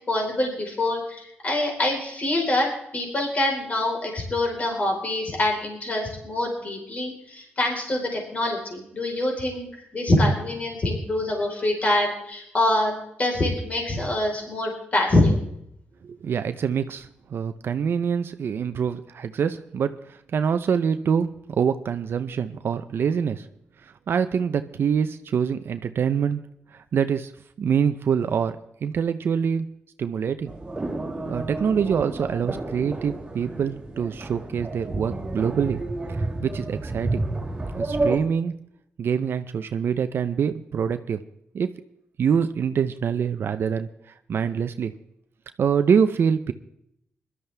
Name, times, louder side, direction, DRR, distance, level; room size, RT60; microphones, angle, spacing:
voice 1, 0.1-2.7 2.9-15.4, left 1 dB, 35° left, 0 dB, 4.3 m, -25 dB
voice 2, 16.0-23.5 24.1-26.4 26.7-27.3 27.6-29.7 30.0-30.5 31.3-35.8 36.1-37.2 37.8-38.5 39.0-41.2 41.5-41.7 42.2-43.9 44.3-44.9 45.6-46.5, right 7 dB, 60° right, 9 dB, 0.7 m, -25 dB
sound 1, 30.5-38.2, right 2 dB, 20° right, 2.6 m, -30 dB
21.5 x 12.5 x 3.4 m, 0.76 s
wide cardioid pair, 125°, 4 cm